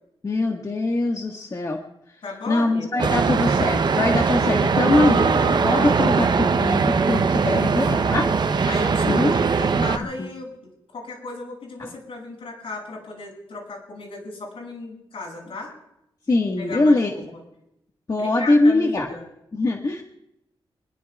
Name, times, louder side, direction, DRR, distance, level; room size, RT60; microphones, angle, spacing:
voice 1, 0.2-1.8 2.5-8.3 9.0-9.3 10.2-10.3 16.3-17.1 18.1-19.1 19.5-20.0, left 2 dB, 40° left, 1 dB, 1.6 m, -22 dB
voice 2, 2.2-3.1 8.7-15.7 16.6-17.4 18.2-19.3, left 3 dB, 80° left, 0 dB, 6.9 m, -35 dB
sound 1, 3.0-10.0, right 5 dB, 50° right, 0.8 m, -20 dB
26.5 x 21.0 x 2.4 m, 0.81 s
wide cardioid pair, 135°, 9 cm